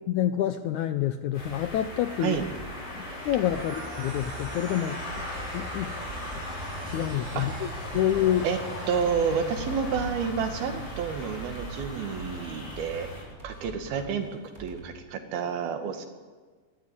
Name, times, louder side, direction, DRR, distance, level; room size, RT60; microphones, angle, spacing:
voice 1, 0.1-2.4 3.0-5.3 5.5-5.9 6.3-6.4 6.9-8.5, left 11 dB, 75° left, 10 dB, 1.8 m, -28 dB
sound 1, 1.3-13.2, left 1 dB, 60° left, 8.9 m, -37 dB
sound 2, 2.3-14.8, right 2 dB, 15° right, 6.4 m, -46 dB
sound 3, 3.5-9.1, right 4 dB, 60° right, 3.7 m, -47 dB
voice 2, 8.9-13.1 13.4-16.1, right 6 dB, 90° right, 6 dB, 3.8 m, -30 dB
23.0 x 14.0 x 9.8 m, 1.5 s
omnidirectional pair, 4.2 m